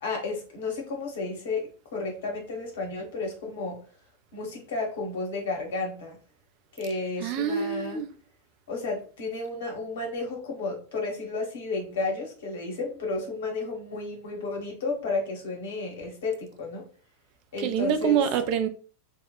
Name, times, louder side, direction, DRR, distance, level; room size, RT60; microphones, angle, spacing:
voice 1, 0.0-3.8 4.3-6.2 6.7-8.0 8.7-16.8 17.5-18.3, left 3 dB, 60° left, 0.8 m, -32 dB
voice 2, 7.2-8.1 17.6-18.7, right 8 dB, 45° right, 0.3 m, -25 dB
2.8 x 2.1 x 2.2 m
figure-of-eight pair, 90°, 0 cm